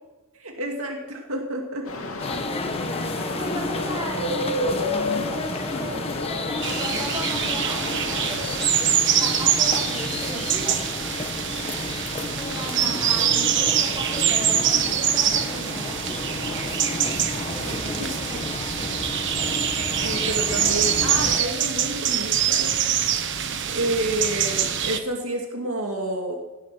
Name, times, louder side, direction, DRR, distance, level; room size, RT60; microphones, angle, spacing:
voice 1, 0.4-2.2 12.9-13.0 18.3-18.6 20.0-22.8 23.7-26.4, right 1 dB, 70° right, 1 dB, 2.4 m, -29 dB
sound 1, 1.9-9.4, left 2 dB, 75° left, 2.5 m, -32 dB
sound 2, 2.2-21.4, left 2 dB, 25° left, 1.2 m, -31 dB
voice 2, 2.7-8.5 9.2-10.8 12.3-17.2 17.4-18.0, right 1 dB, 20° right, -3 dB, 4.7 m, -36 dB
sound 3, 6.6-25.0, right 9 dB, 55° right, 1.3 m, -24 dB
18.5 x 12.0 x 6.2 m, 1.1 s
head